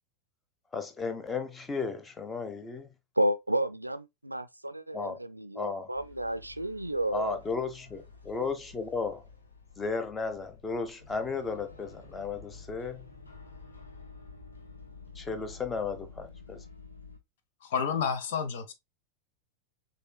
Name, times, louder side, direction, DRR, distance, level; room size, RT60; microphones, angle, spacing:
voice 1, 0.7-2.9 4.9-5.2 5.5-5.9 7.1-9.2 9.8-13.1 15.1-16.6, left 4 dB, 15° left, 0.8 m, -34 dB
voice 2, 3.2-7.4, right 1 dB, 85° right, 0.4 m, -31 dB
sound 1, 5.9-17.2, left 4 dB, 75° left, 1.1 m, -50 dB
voice 3, 17.7-18.7, left 6 dB, 55° left, 0.8 m, -30 dB
6.5 x 2.8 x 2.2 m
figure-of-eight pair, 90°, 0 cm